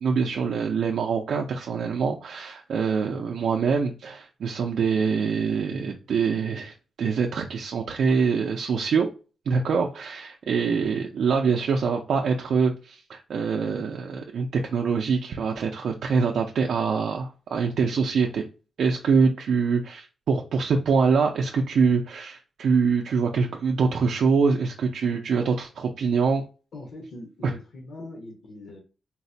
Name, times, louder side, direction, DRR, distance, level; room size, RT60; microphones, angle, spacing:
voice 1, 0.0-9.1 9.5-18.5 18.8-26.4, right 5 dB, 75° right, 0.4 m, -24 dB
voice 2, 26.7-28.8, left 1 dB, 80° left, 0.9 m, -41 dB
3.8 x 2.1 x 2.6 m
wide cardioid pair, 135°, 0 cm